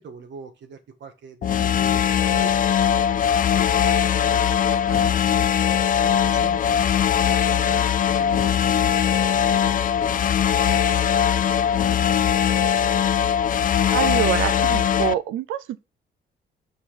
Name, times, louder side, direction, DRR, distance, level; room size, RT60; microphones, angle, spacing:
voice 1, 0.0-3.9 4.3-4.4 4.8-5.5 6.0-12.2, right 5 dB, 65° right, 1.8 m, -44 dB
sound 1, 1.4-15.1, left 8 dB, 45° left, 0.5 m, -20 dB
voice 2, 13.9-15.8, right 11 dB, 85° right, 0.7 m, -25 dB
5.8 x 5.1 x 5.7 m
cardioid pair, 90°, 20 cm